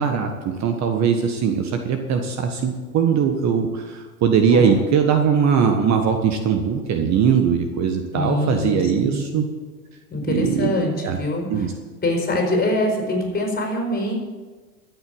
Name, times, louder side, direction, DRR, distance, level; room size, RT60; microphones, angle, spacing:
voice 1, 0.0-9.5 10.3-10.7 11.0-11.2 11.5-11.7, right 7 dB, 35° right, 5 dB, 1.4 m, -20 dB
voice 2, 4.5-4.9 8.1-9.4 10.1-11.7 12.0-14.1, left 1 dB, 20° left, 2 dB, 4.6 m, -24 dB
13.5 x 8.3 x 8.6 m, 1.4 s
hypercardioid pair, 100°, 47 cm